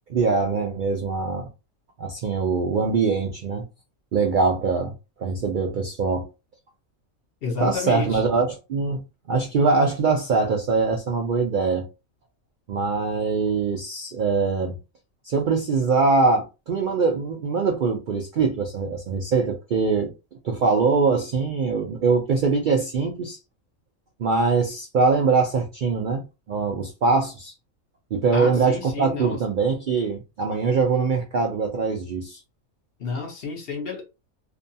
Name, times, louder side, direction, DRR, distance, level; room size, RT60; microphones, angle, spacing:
voice 1, 0.1-1.5 2.0-3.7 4.1-6.3 7.6-9.0 9.3-11.9 12.7-14.8 15.2-20.1 20.4-23.4 24.2-27.5 28.1-32.4, right 4 dB, 80° right, 0.4 m, -23 dB
voice 2, 7.4-8.2 28.3-29.4 33.0-34.0, left 4 dB, 55° left, 0.7 m, -30 dB
2.6 x 2.2 x 2.6 m
omnidirectional pair, 1.4 m